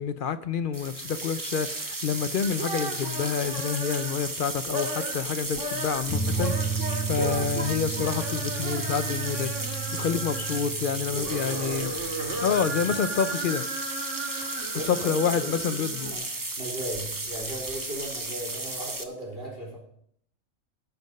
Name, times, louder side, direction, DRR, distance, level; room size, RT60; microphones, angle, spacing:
voice 1, 0.0-11.9 12.4-13.7 14.5-16.1, left 7 dB, 60° left, 0.5 m, -28 dB
sound 1, 0.7-19.0, right 2 dB, 20° right, 0.7 m, -34 dB
sound 2, 2.4-4.2 4.6-5.2 5.5-10.7 11.1-16.1, right 2 dB, 55° right, 2.1 m, -36 dB
sound 3, 6.1-13.0, right 5 dB, 20° left, 0.6 m, -33 dB
voice 2, 10.9-11.9 14.5-15.1 15.4-16.2 16.6-19.8, right 1 dB, 40° right, 3.9 m, -38 dB
18.0 x 6.0 x 5.3 m
omnidirectional pair, 1.5 m